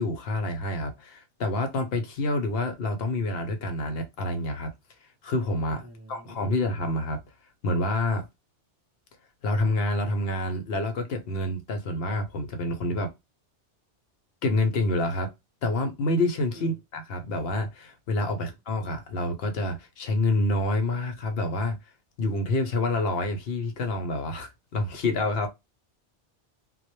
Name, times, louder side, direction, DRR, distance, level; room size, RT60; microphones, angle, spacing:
voice 1, 0.0-4.7 5.2-5.8 6.1-7.2 7.6-8.2 9.4-13.1 14.4-15.3 15.6-21.8 22.2-25.5, left 2 dB, 65° left, 0.7 m, -27 dB
voice 2, 5.8-6.6 16.5-16.7 18.3-18.5, right 1 dB, 25° right, 0.4 m, -48 dB
2.1 x 2.0 x 2.9 m
omnidirectional pair, 1.2 m